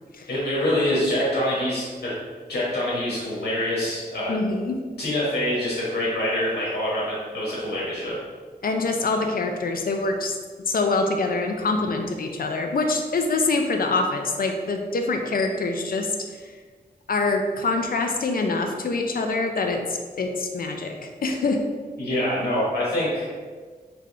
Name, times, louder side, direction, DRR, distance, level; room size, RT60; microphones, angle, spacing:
voice 1, 0.3-2.2 2.5-4.3 5.0-8.2 22.0-23.3, left 1 dB, 85° left, -8 dB, 1.3 m, -25 dB
voice 2, 4.3-4.8 8.6-10.4 10.7-16.1 17.1-19.8 20.2-21.6, left 3 dB, 65° left, 4 dB, 0.5 m, -25 dB
3.5 x 3.4 x 3.7 m, 1.5 s
wide cardioid pair, 110°, 16 cm